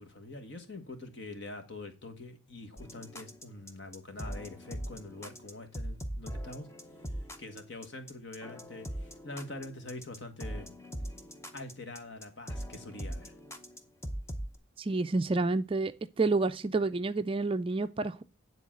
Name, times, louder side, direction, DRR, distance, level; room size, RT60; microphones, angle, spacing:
voice 1, 0.0-6.7 7.4-10.7 11.5-13.3, left 2 dB, 55° left, 1.5 m, -44 dB
sound 1, 2.8-14.6, equal, 15° left, 0.7 m, -41 dB
voice 2, 14.8-15.9 16.2-18.2, right 3 dB, 25° right, 0.4 m, -29 dB
9.9 x 3.9 x 7.3 m
head